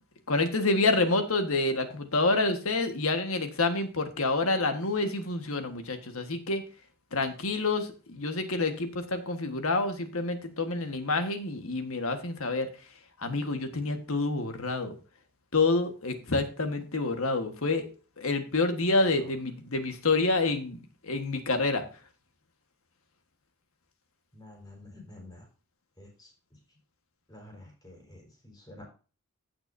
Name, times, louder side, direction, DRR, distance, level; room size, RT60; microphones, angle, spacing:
voice 1, 0.3-6.6 7.1-12.7 13.2-14.9 15.5-17.9 18.2-20.8 21.0-21.8, left 3 dB, 65° left, 7 dB, 1.5 m, -28 dB
voice 2, 24.3-25.5 26.0-26.6 27.3-28.9, left 1 dB, 20° left, 0 dB, 4.3 m, -50 dB
15.5 x 6.1 x 2.7 m, 0.34 s
head